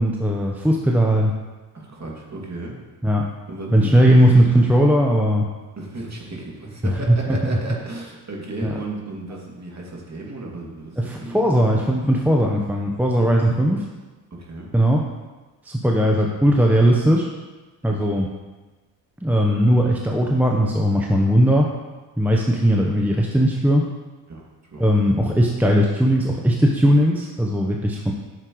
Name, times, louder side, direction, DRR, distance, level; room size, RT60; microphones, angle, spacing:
voice 1, 0.0-1.3 3.0-3.3 3.7-5.5 6.8-7.6 8.6-8.7 11.0-13.8 14.7-15.0 15.6-17.3 17.8-18.3 19.2-21.7 22.2-23.8 24.8-28.1, equal, 5° right, 0 dB, 0.9 m, -18 dB
voice 2, 1.7-2.8 3.5-4.4 5.8-11.4 13.2-13.3 14.3-14.7 17.9-18.0 24.3-24.4 24.7-24.8, right 2 dB, 35° right, -2 dB, 2.5 m, -34 dB
9.8 x 6.7 x 3.1 m, 1.2 s
hypercardioid pair, 55°, 48 cm